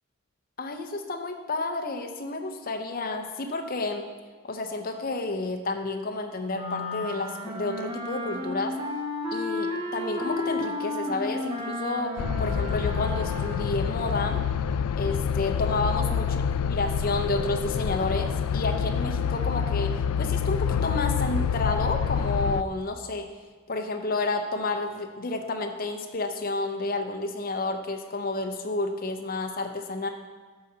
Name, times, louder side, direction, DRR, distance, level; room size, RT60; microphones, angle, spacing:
voice 1, 0.6-4.1 4.4-8.8 9.3-14.4 15.0-16.4 16.7-23.3 23.7-30.1, left 2 dB, 40° left, 4 dB, 0.6 m, -30 dB
sound 1, 6.5-13.9, left 1 dB, 25° right, 1.2 m, -33 dB
sound 2, 12.2-22.6, left 7 dB, 80° left, 0.3 m, -27 dB
12.0 x 4.0 x 6.7 m, 1.5 s
head